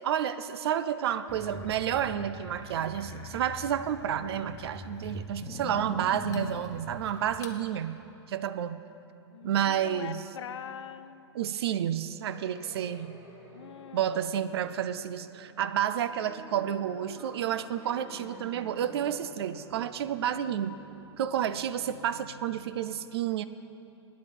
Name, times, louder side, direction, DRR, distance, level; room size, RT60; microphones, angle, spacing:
voice 1, 0.0-8.0 8.3-8.8 9.4-10.2 11.3-13.2 13.9-20.8 21.2-23.4, right 10 dB, 60° right, 13 dB, 0.5 m, -30 dB
sound 1, 1.3-7.6, left 2 dB, 20° left, 0.9 m, -42 dB
voice 2, 5.3-5.8 9.3-11.3 13.5-14.3 18.3-18.5, left 8 dB, 85° left, 12 dB, 0.4 m, -44 dB
sound 2, 12.3-22.8, right 1 dB, 15° right, 1.8 m, -51 dB
9.4 x 8.4 x 8.1 m, 2.7 s
hypercardioid pair, 120°, 15 cm